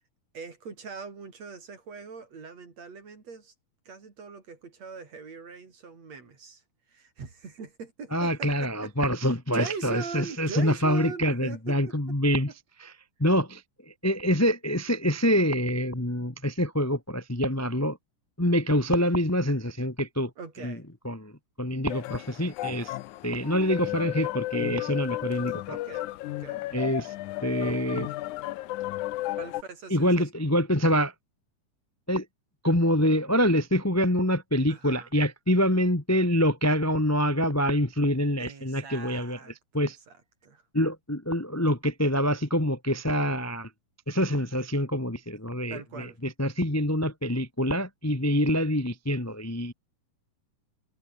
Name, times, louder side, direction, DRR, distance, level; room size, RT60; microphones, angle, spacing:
voice 1, 0.3-3.5 3.9-9.1 9.5-11.9 12.5-12.6 20.4-20.9 25.7-26.7 29.3-30.3 34.7-35.1 38.4-40.6 45.7-46.2, right 5 dB, 55° right, 5.4 m, -41 dB
voice 2, 8.1-12.5 12.8-12.9 13.2-13.6 14.0-18.0 18.4-20.3 20.6-20.7 21.0-21.3 21.6-22.9 23.2-25.6 26.7-27.1 27.4-28.1 29.9-31.1 32.1-32.2 32.6-39.4 39.7-40.0 40.7-43.7 44.1-49.7, equal, 20° left, 0.4 m, -25 dB
sound 1, 21.9-29.6, left 16 dB, 75° left, 2.1 m, -34 dB
omnidirectional pair, 3.6 m